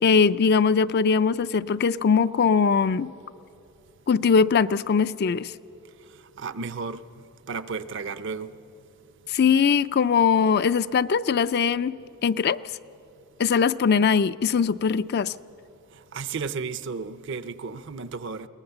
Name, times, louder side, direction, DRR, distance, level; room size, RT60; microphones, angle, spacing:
voice 1, 0.0-3.1 4.1-5.5 9.3-12.6 13.4-15.3, left 6 dB, 50° left, 14 dB, 0.4 m, -21 dB
voice 2, 6.4-7.0 7.5-8.5 16.1-18.5, right 5 dB, 60° right, 13 dB, 0.7 m, -33 dB
22.0 x 19.0 x 6.9 m, 2.7 s
head